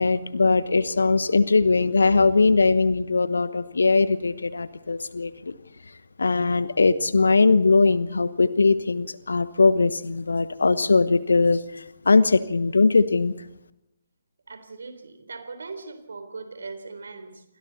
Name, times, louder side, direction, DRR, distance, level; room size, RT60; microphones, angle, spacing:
voice 1, 0.0-5.3 6.2-11.6 12.1-13.3, left 4 dB, 65° left, 14 dB, 1.2 m, -20 dB
voice 2, 14.5-17.4, right 4 dB, 65° right, 9 dB, 4.0 m, -39 dB
29.5 x 24.0 x 4.2 m, 0.84 s
figure-of-eight pair, 135°, 0 cm